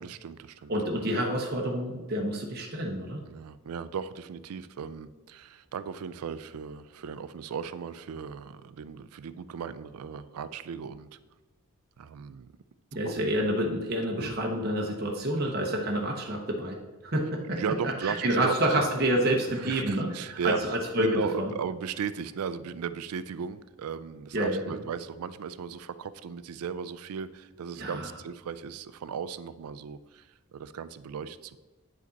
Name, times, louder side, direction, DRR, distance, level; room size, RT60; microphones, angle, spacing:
voice 1, 0.0-0.7 3.2-11.2 12.0-12.5 13.1-13.2 14.2-14.3 15.4-15.5 17.5-18.8 19.6-20.6 21.0-30.3 30.5-31.6, right 6 dB, 85° right, 14 dB, 0.4 m, -36 dB
voice 2, 0.7-3.2 12.9-16.8 17.0-21.5 24.3-24.8 27.8-28.1, right 1 dB, 45° right, 0 dB, 0.9 m, -28 dB
8.6 x 5.1 x 4.0 m, 1.2 s
head